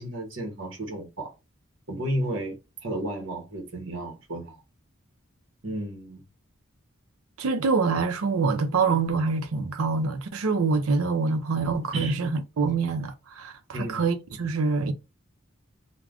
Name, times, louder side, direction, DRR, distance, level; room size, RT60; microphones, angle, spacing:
voice 1, 0.0-1.3 1.9-2.6 2.8-4.6 5.6-6.2 11.9-12.2 13.7-14.0, right 1 dB, 60° right, 0.9 m, -32 dB
voice 2, 7.4-14.9, right 4 dB, 80° right, 0.5 m, -25 dB
2.4 x 2.1 x 3.4 m
head